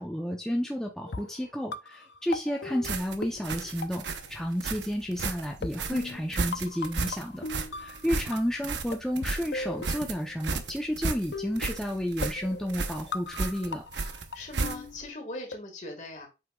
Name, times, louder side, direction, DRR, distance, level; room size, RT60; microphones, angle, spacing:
voice 1, 0.0-4.0 4.3-7.4 7.8-13.8, equal, 5° left, 0 dB, 0.7 m, -31 dB
sound 1, 1.1-4.4 4.7-4.8 5.6-8.6 8.9-10.6 11.3-15.6, left 3 dB, 75° left, 0.6 m, -39 dB
sound 2, 2.8-15.1, right 4 dB, 85° right, 0.9 m, -34 dB
voice 2, 14.2-16.3, left 1 dB, 45° left, 4 dB, 1.8 m, -40 dB
7.9 x 5.7 x 2.3 m, 0.27 s
head